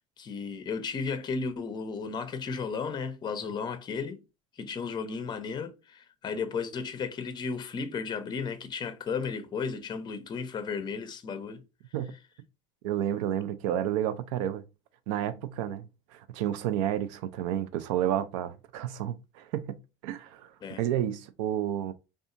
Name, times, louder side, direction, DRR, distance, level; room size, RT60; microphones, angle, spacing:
voice 1, 0.0-4.2 4.5-11.6 20.6-20.8, left 5 dB, 30° left, 0.5 m, -34 dB
voice 2, 12.8-14.6 15.1-20.5 20.8-21.9, right 11 dB, 80° right, 0.4 m, -31 dB
2.7 x 2.3 x 2.5 m
supercardioid pair, 95°, 16 cm